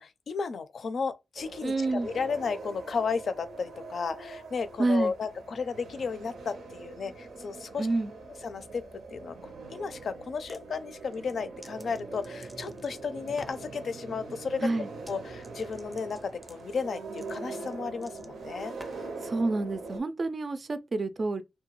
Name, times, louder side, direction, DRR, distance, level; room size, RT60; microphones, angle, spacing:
voice 1, 0.0-7.9 8.4-8.8 9.1-14.7 15.1-18.7, left 5 dB, 65° left, 0.4 m, -34 dB
sound 1, 1.3-20.0, right 3 dB, 85° right, 0.6 m, -43 dB
voice 2, 1.6-2.1 4.8-5.1 7.8-8.1 14.6-14.9 19.2-21.4, right 2 dB, 50° right, 0.4 m, -28 dB
sound 2, 10.3-10.6 11.1-12.9 13.3-13.7 15.0-15.2 15.4-19.2, left 1 dB, 10° left, 0.5 m, -52 dB
2.8 x 2.2 x 2.9 m
cardioid pair, 65°, 0 cm